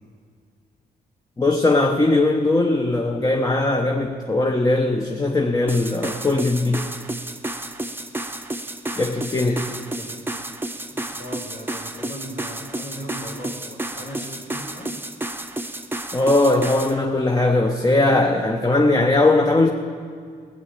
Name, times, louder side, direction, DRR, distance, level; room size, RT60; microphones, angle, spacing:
voice 1, 1.4-6.9 9.0-9.6 16.1-19.7, left 2 dB, 20° left, 3 dB, 0.9 m, -19 dB
sound 1, 5.7-17.0, right 1 dB, 10° right, 0.8 m, -31 dB
voice 2, 9.4-10.4 10.9-15.0, equal, 80° left, -4 dB, 3.4 m, -38 dB
16.0 x 8.3 x 8.3 m, 2.2 s
cardioid pair, 85°, 17 cm